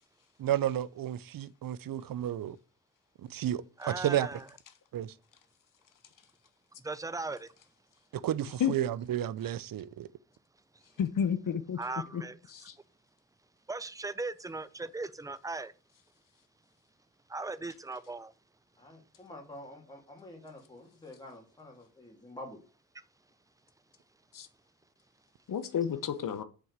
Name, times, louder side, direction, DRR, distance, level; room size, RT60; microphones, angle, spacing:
voice 1, 0.4-2.6 3.3-4.3 4.9-5.1 8.1-10.1, right 11 dB, 90° right, 0.6 m, -32 dB
voice 2, 3.8-4.5 6.8-7.5 10.7-10.8 11.8-12.7 13.7-15.7 17.3-18.3, right 3 dB, 10° right, 0.6 m, -38 dB
voice 3, 11.0-11.8 12.1-12.2 12.5-12.7 24.3-24.5 25.5-26.4, left 8 dB, 70° left, 1.0 m, -30 dB
voice 4, 18.8-22.6, left 1 dB, 10° left, 2.2 m, -48 dB
7.7 x 6.3 x 8.0 m
wide cardioid pair, 160°, 33 cm